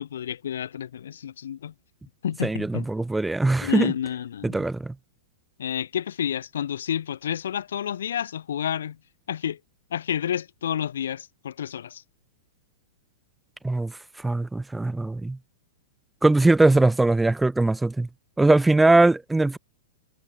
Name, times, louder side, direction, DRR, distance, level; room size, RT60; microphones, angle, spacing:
voice 1, 0.0-1.7 2.2-2.9 3.6-4.6 5.6-9.0 9.3-9.6 9.9-12.0, left 9 dB, 85° left, 1.9 m, -30 dB
voice 2, 2.4-3.9 4.4-4.9 13.6-15.4 16.2-18.1 18.4-19.6, right 2 dB, 5° right, 0.6 m, -21 dB
supercardioid pair, 155°, 0 cm